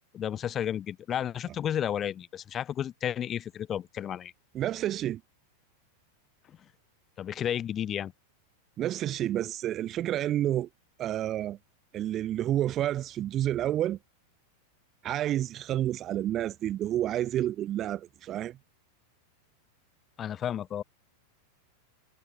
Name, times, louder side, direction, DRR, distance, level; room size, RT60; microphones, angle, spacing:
voice 1, 0.1-4.3 7.2-8.1 20.2-20.8, left 10 dB, 25° left, 1.6 m, -32 dB
voice 2, 4.5-5.2 8.8-10.7 11.0-11.6 11.9-14.0 15.0-18.6, right 12 dB, 30° right, 0.6 m, -29 dB
figure-of-eight pair, 90°, 0 cm